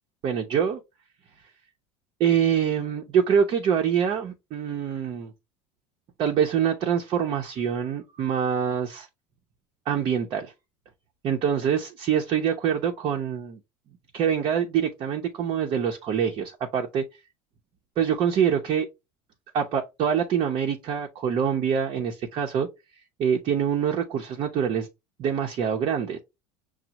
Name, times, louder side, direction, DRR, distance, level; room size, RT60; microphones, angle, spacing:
voice 1, 0.2-0.8 2.2-5.3 6.2-9.1 9.9-10.5 11.2-13.6 14.1-17.0 18.0-18.9 19.5-22.7 23.2-24.9 25.2-26.2, right 8 dB, 45° right, 0.6 m, -25 dB
6.0 x 2.0 x 2.9 m
supercardioid pair, 115°, 11 cm